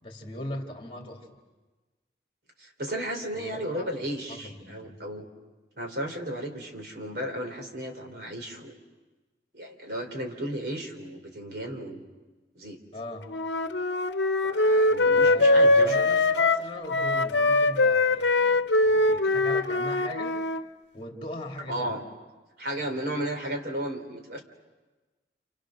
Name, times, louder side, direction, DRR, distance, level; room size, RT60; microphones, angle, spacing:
voice 1, 0.0-1.4 3.3-5.0 12.9-13.3 15.1-20.4 20.9-22.0, left 1 dB, 30° left, 1 dB, 2.8 m, -39 dB
voice 2, 2.6-5.3 5.8-8.8 9.5-12.0 12.6-12.8 14.4-16.0 21.7-22.0 22.6-24.4, right 1 dB, 60° right, 4 dB, 3.5 m, -34 dB
Wind instrument woodwind instrument, 13.3-20.6, left 2 dB, 75° left, 0.9 m, -22 dB
30.0 x 28.5 x 6.4 m, 1.2 s
head